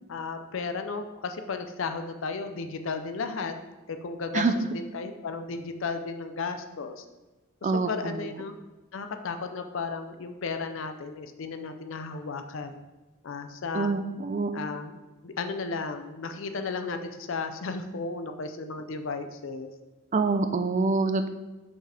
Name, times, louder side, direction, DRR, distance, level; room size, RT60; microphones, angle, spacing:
voice 1, 0.1-3.5 3.9-7.0 7.6-8.5 8.9-12.8 13.2-13.9 14.5-14.9 15.2-19.7, left 4 dB, 60° left, 7 dB, 0.5 m, -34 dB
voice 2, 7.6-8.2 13.7-14.5 20.1-21.3, right 3 dB, 35° right, 8 dB, 0.4 m, -25 dB
5.9 x 5.2 x 3.4 m, 1.1 s
head